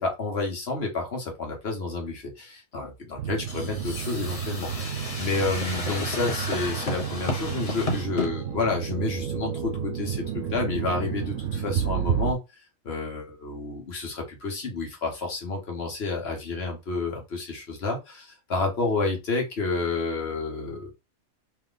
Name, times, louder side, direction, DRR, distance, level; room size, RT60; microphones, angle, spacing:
voice 1, 0.0-12.4 12.8-20.9, left 3 dB, 55° left, 2 dB, 1.3 m, -30 dB
sound 1, 3.2-12.3, right 9 dB, 85° right, 1.0 m, -31 dB
sound 2, 3.5-8.3, left 2 dB, 35° left, 0.8 m, -32 dB
3.4 x 2.9 x 3.9 m, 0.25 s
omnidirectional pair, 1.3 m